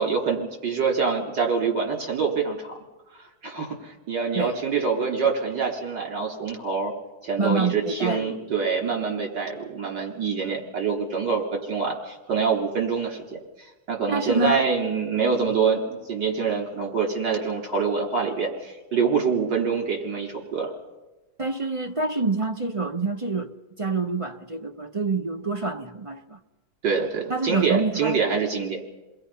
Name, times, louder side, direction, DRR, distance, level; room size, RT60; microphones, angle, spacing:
voice 1, 0.0-2.7 3.1-6.9 7.2-13.2 13.9-20.7 26.8-28.8, right 5 dB, 60° right, 4.2 m, -25 dB
voice 2, 7.4-8.4 14.1-14.6 21.4-23.5 23.8-26.4 27.3-28.2, right 3 dB, 40° right, 0.4 m, -27 dB
29.0 x 21.5 x 5.6 m
omnidirectional pair, 2.1 m